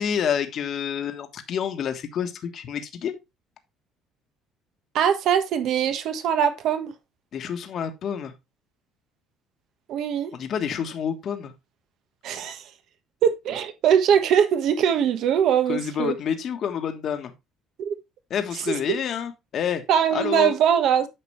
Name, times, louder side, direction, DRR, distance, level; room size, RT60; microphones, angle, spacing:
voice 1, 0.0-3.1 7.3-8.3 10.3-11.5 15.7-17.3 18.3-19.8 20.1-20.5, left 8 dB, 50° left, 1.4 m, -28 dB
voice 2, 4.9-6.9 9.9-10.3 12.2-12.6 13.2-16.1 17.8-17.9 18.7-19.0 19.9-21.1, right 8 dB, 65° right, 1.4 m, -22 dB
9.0 x 5.9 x 3.2 m
cardioid pair, 115°, 0 cm